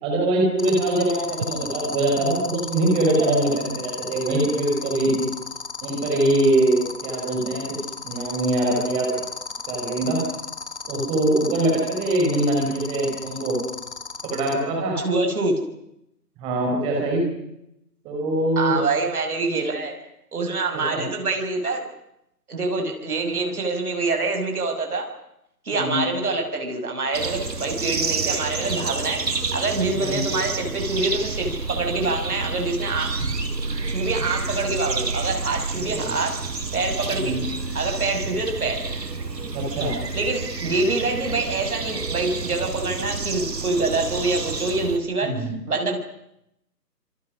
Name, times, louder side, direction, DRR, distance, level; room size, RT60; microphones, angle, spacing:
voice 1, 0.0-5.2 5.8-7.6 8.0-9.1 9.7-10.2 10.9-13.6 14.2-14.9 16.4-17.3 18.0-18.8 20.7-21.0 25.7-26.0 29.9-30.2 35.9-36.1 37.1-37.4 39.5-40.0 45.2-45.5, right 1 dB, 10° right, -1 dB, 4.9 m, -23 dB
sound 1, 0.6-14.5, left 5 dB, 40° left, 3.2 m, -33 dB
voice 2, 15.0-15.5 18.6-20.0 20.3-21.8 22.5-25.1 25.6-29.3 29.5-33.1 33.9-36.4 36.7-37.4 37.7-38.8 40.1-45.3 45.6-46.0, right 3 dB, 60° right, 4 dB, 6.5 m, -25 dB
sound 2, 27.1-45.0, right 4 dB, 80° right, 4.3 m, -29 dB
28.5 x 27.0 x 6.3 m, 0.82 s
figure-of-eight pair, 165°, 49 cm